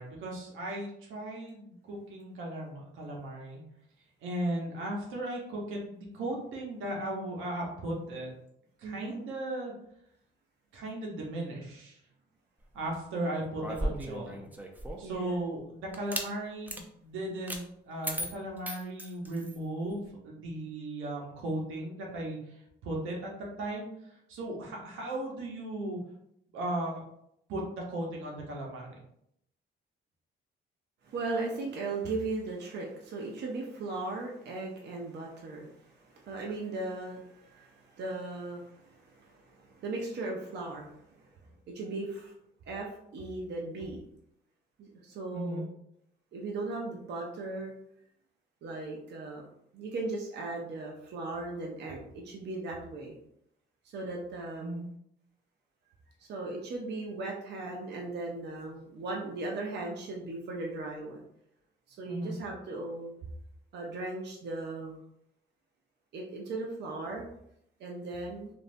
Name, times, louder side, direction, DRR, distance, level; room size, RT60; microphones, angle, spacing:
voice 1, 0.0-3.6 4.2-8.3 8.8-9.7 10.7-12.0 12.7-14.5 15.0-23.3 23.6-26.0 26.5-27.0 27.5-29.0 45.3-45.6 54.6-54.9 62.1-62.4, right 1 dB, 90° right, -2 dB, 0.9 m, -36 dB
voice 2, 8.8-9.1 15.0-15.4 31.0-41.2 41.7-42.3 42.7-42.9 43.1-44.0 44.8-45.6 46.3-47.7 48.6-49.4 49.7-53.2 53.9-54.8 56.2-61.2 61.9-63.1 63.7-65.0 66.1-67.2 67.8-68.5, right 2 dB, 60° right, -1 dB, 0.6 m, -37 dB
sound 1, 13.6-15.1 15.9-16.3 16.7-16.8 17.5-17.6 18.0-19.6, right 1 dB, 10° right, 0.4 m, -36 dB
3.1 x 2.6 x 2.6 m, 0.75 s
cardioid pair, 90°, 20 cm